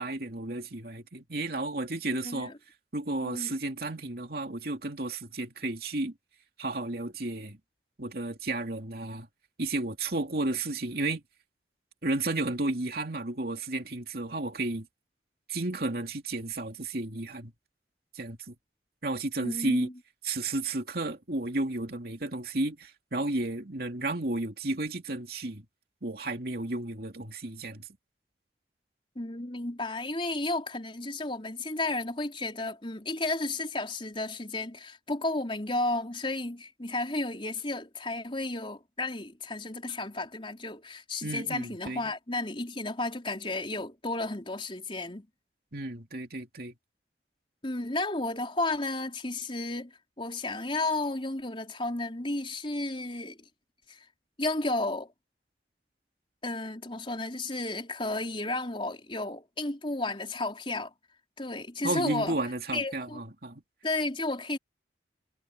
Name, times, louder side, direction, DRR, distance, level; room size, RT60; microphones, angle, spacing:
voice 1, 0.0-2.5 2.9-6.1 6.6-7.6 8.0-9.3 9.6-11.2 12.0-14.9 15.5-17.5 18.1-18.5 19.0-19.9 20.2-25.7 26.0-27.9 41.2-42.1 45.7-46.7 61.8-63.6, right 2 dB, 55° right, 2.7 m, -32 dB
voice 2, 2.1-2.5 3.2-3.5 19.4-19.9 29.2-45.3 47.6-53.4 53.9-54.0 54.4-55.1 56.4-60.9 61.4-62.3 62.7-63.2 63.8-64.6, left 2 dB, 30° left, 4.3 m, -33 dB
head